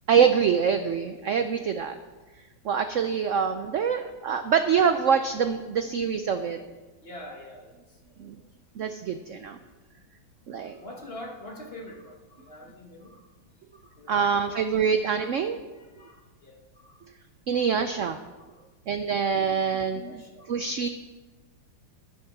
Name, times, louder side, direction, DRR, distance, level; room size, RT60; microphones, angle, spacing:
voice 1, 0.1-1.9 2.6-6.6 8.2-8.4 8.8-9.6 10.5-10.8 14.1-15.6 17.5-18.2 18.9-20.2 20.5-20.9, right 6 dB, 80° right, 8 dB, 0.6 m, -25 dB
voice 2, 7.0-7.7 10.8-13.2 13.7-14.5 15.7-17.0 18.5-18.6 19.6-20.9, left 1 dB, 35° left, 1 dB, 1.4 m, -45 dB
11.5 x 9.8 x 6.0 m, 1.2 s
omnidirectional pair, 2.0 m